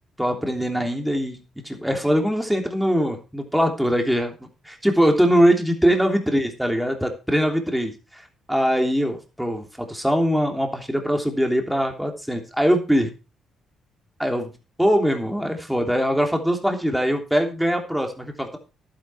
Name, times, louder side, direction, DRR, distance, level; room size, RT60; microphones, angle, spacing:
voice 1, 0.2-4.3 4.6-8.2 8.5-13.1 14.2-14.5 14.8-18.6, equal, 5° right, 3 dB, 3.2 m, -22 dB
11.5 x 9.9 x 4.6 m, 0.31 s
cardioid pair, 90°, 0 cm